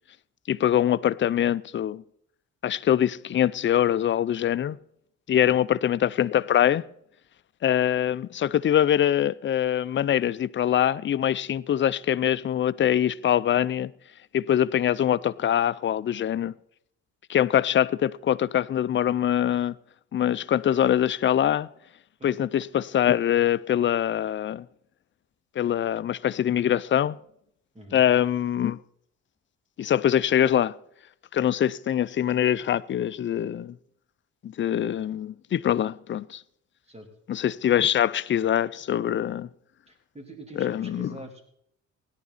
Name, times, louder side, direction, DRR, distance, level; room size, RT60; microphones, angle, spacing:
voice 1, 0.5-2.0 2.6-4.8 5.3-6.8 7.6-13.9 14.3-16.5 17.3-19.7 20.1-21.7 22.2-24.7 25.6-27.2 27.9-28.8 29.8-30.7 31.3-33.8 34.4-36.4 37.3-39.5 40.6-41.1, left 10 dB, 40° left, 0.5 m, -23 dB
voice 2, 39.9-41.4, right 1 dB, 20° right, 3.3 m, -44 dB
17.0 x 10.5 x 4.1 m
cardioid pair, 90°, 30 cm